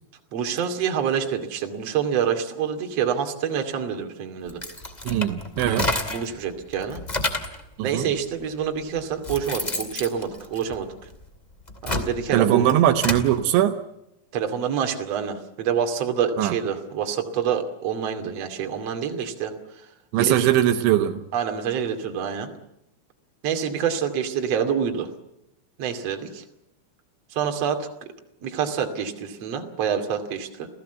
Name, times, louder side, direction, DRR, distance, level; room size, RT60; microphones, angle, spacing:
voice 1, 0.3-4.6 6.1-7.0 7.8-10.9 11.8-12.7 14.3-19.5 20.2-20.4 21.3-22.5 23.4-25.1 25.8-26.4 27.3-27.9 28.4-30.7, right 8 dB, 40° right, 5 dB, 3.0 m, -27 dB
sound 1, 4.5-6.3 6.7-7.6 8.4-8.5 9.0-11.1 11.6-13.3, left 2 dB, 20° left, 1.1 m, -29 dB
voice 2, 5.1-5.9 7.8-8.1 12.3-13.8 16.4-16.5 20.1-21.2, right 12 dB, 80° right, 9 dB, 3.3 m, -20 dB
29.0 x 16.5 x 8.2 m, 0.84 s
omnidirectional pair, 5.3 m